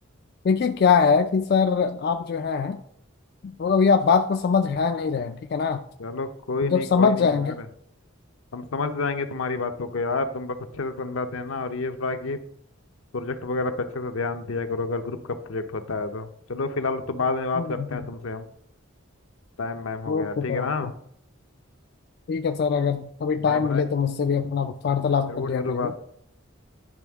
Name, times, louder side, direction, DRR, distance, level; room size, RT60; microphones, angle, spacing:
voice 1, 0.4-2.8 3.4-5.8 6.6-7.6 17.6-17.9 20.1-20.9 22.3-25.9, left 5 dB, 50° left, 7 dB, 0.3 m, -23 dB
voice 2, 6.0-7.7 8.5-12.4 13.1-18.4 19.6-20.9 23.4-23.9 25.3-26.0, left 3 dB, 80° left, 7 dB, 0.7 m, -29 dB
10.5 x 3.5 x 3.5 m, 0.68 s
head